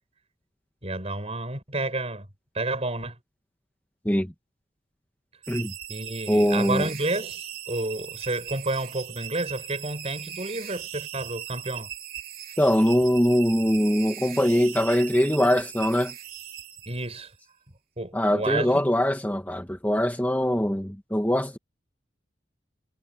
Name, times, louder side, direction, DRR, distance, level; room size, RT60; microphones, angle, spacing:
voice 1, 0.8-2.3 2.5-3.2 5.9-11.9 16.9-17.3 18.0-18.9, right 2 dB, 35° right, 6.9 m, -30 dB
sound 1, 5.4-17.3, right 11 dB, 55° right, 3.8 m, -39 dB
voice 2, 6.3-6.9 12.6-16.1 18.1-21.6, equal, 10° left, 1.8 m, -22 dB
head